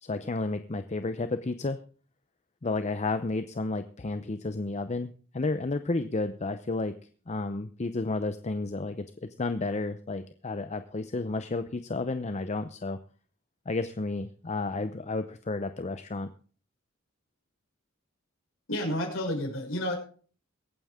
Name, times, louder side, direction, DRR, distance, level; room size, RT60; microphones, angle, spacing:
voice 1, 0.0-1.8 2.6-6.9 7.3-13.0 13.7-16.3, left 3 dB, 35° left, 10 dB, 0.6 m, -32 dB
voice 2, 18.7-19.9, left 1 dB, 75° left, 0 dB, 6.0 m, -30 dB
23.0 x 9.1 x 3.6 m, 0.41 s
head